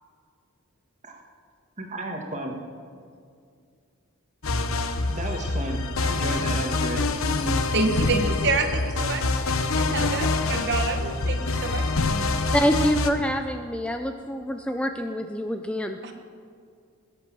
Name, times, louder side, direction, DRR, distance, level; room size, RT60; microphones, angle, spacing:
voice 1, 1.8-2.5 5.1-7.5, right 1 dB, 30° right, 2 dB, 1.7 m, -33 dB
sound 1, 4.4-13.1, left 3 dB, 75° left, 0.9 m, -25 dB
voice 2, 7.7-11.8 16.0-16.1, right 3 dB, 50° right, 6 dB, 1.3 m, -28 dB
voice 3, 12.5-16.0, equal, 5° left, 6 dB, 0.4 m, -26 dB
20.5 x 8.4 x 6.1 m, 2.2 s
head